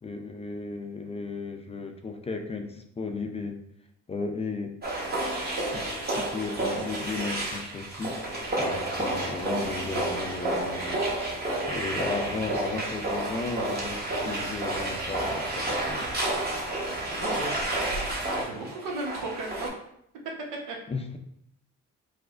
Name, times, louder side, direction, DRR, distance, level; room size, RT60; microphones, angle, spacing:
voice 1, 0.0-3.6 4.1-4.7 5.7-5.8 6.2-11.0 11.7-16.1 20.9-21.2, left 3 dB, 20° left, 4 dB, 0.3 m, -35 dB
sound 1, 4.8-19.7, right 1 dB, 30° right, 0.9 m, -30 dB
voice 2, 17.2-17.5 18.3-19.7 20.4-20.8, right 2 dB, 90° right, 0 dB, 0.8 m, -35 dB
4.6 x 2.1 x 2.4 m, 0.74 s
cardioid pair, 90°, 30 cm